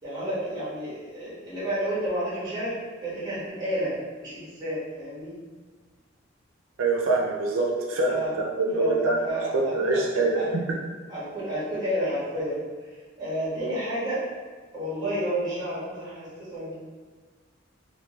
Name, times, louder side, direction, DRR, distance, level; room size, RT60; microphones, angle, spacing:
voice 1, 0.0-2.7 3.0-3.9 4.2-5.4 8.1-8.3 8.8-10.5 11.1-12.6 13.2-14.2 14.7-16.7, equal, 20° right, -9 dB, 1.5 m, -30 dB
voice 2, 6.8-8.2 8.5-9.2 9.5-10.8, right 2 dB, 90° right, -1 dB, 0.5 m, -24 dB
3.2 x 2.7 x 3.1 m, 1.5 s
head